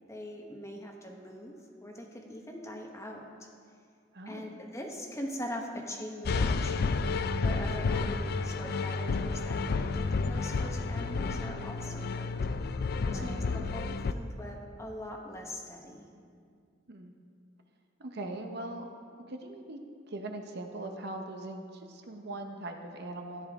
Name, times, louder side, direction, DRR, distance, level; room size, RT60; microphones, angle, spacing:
voice 1, 0.1-3.5 4.3-7.0 7.4-12.4 12.7-16.1, equal, 15° left, 1 dB, 1.1 m, -42 dB
voice 2, 4.1-4.5 13.1-13.4 16.9-17.1 18.0-18.9 19.3-19.8 20.1-23.5, right 2 dB, 60° right, 4 dB, 0.9 m, -41 dB
sound 1, 6.3-14.1, left 4 dB, 55° left, 0.4 m, -31 dB
13.5 x 10.5 x 3.6 m, 2.2 s
head